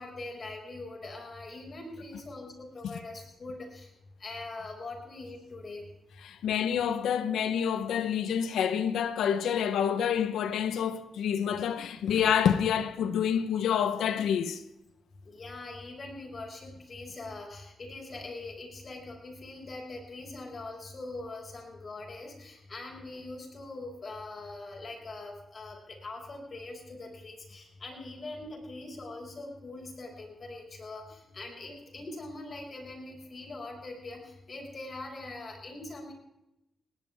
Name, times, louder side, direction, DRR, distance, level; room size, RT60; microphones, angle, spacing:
voice 1, 0.0-3.9 4.2-5.9 15.2-36.1, left 2 dB, 50° left, 5.8 m, -42 dB
voice 2, 6.2-14.6, left 8 dB, 90° left, 1.0 m, -28 dB
19.0 x 18.5 x 3.6 m
cardioid pair, 65°, 0 cm